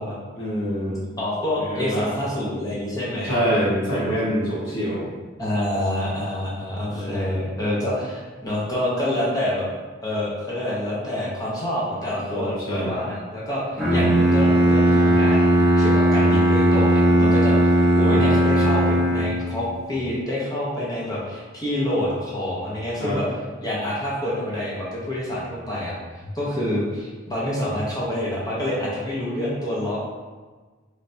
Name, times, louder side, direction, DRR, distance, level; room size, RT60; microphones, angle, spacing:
voice 1, 0.3-1.0 1.6-2.0 3.3-5.1 6.9-7.3 12.3-12.9 23.0-23.2, equal, 85° left, -6 dB, 1.2 m, -25 dB
voice 2, 1.2-3.3 5.4-9.7 10.0-25.9 26.3-30.0, left 1 dB, 20° left, -7 dB, 0.7 m, -27 dB
Bowed string instrument, 13.8-19.7, right 1 dB, 5° left, 1.1 m, -18 dB
3.2 x 3.2 x 2.6 m, 1.3 s
head